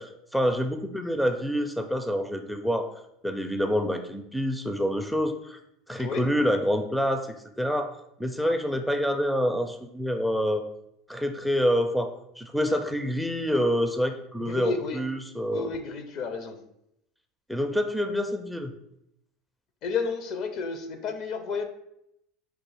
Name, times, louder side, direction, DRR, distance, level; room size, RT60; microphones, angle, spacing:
voice 1, 0.0-2.9 3.2-5.6 5.9-7.9 8.2-10.6 11.1-15.7 17.5-18.7, equal, ahead, 7 dB, 0.4 m, -27 dB
voice 2, 6.0-6.3 14.4-15.0 15.5-16.6 19.8-21.6, left 5 dB, 55° left, 7 dB, 0.7 m, -31 dB
4.7 x 2.4 x 4.7 m, 0.79 s
hypercardioid pair, 90°, 0 cm